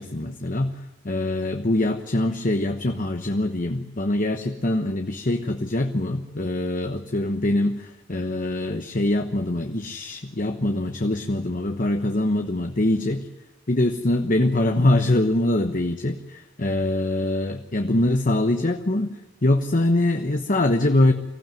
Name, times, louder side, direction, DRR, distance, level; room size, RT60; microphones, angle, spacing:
voice 1, 0.0-13.3 13.7-21.1, left 1 dB, 40° left, 6 dB, 1.1 m, -23 dB
23.5 x 15.5 x 9.1 m, 1.1 s
head